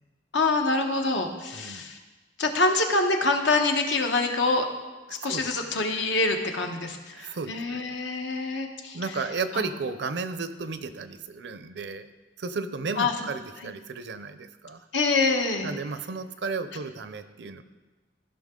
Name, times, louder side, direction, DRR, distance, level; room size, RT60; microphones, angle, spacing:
voice 1, 0.3-2.0 2.4-4.7 5.1-9.0 13.0-13.1 14.9-15.7, left 3 dB, 80° left, 4 dB, 1.0 m, -25 dB
voice 2, 1.5-1.9 5.1-5.9 7.1-8.0 8.9-12.1 12.4-14.9 15.6-17.6, right 4 dB, 65° right, 11 dB, 0.6 m, -34 dB
14.0 x 5.9 x 3.7 m, 1.2 s
head